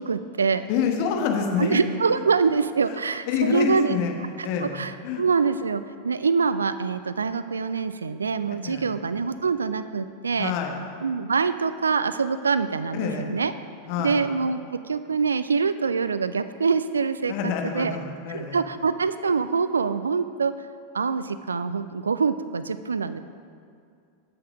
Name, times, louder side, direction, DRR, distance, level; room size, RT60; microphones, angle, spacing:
voice 1, 0.0-0.7 1.6-4.0 4.4-10.5 11.0-13.5 14.0-18.0 18.3-20.7 20.9-23.2, right 5 dB, 75° right, 13 dB, 0.3 m, -25 dB
voice 2, 0.7-1.8 2.9-3.0 3.3-4.1 4.4-4.8 5.0-5.2 8.6-8.9 10.3-10.8 12.9-13.3 13.9-14.2 17.3-18.6, left 6 dB, 45° left, 3 dB, 1.1 m, -27 dB
7.9 x 7.7 x 5.0 m, 2.4 s
figure-of-eight pair, 90°, 0 cm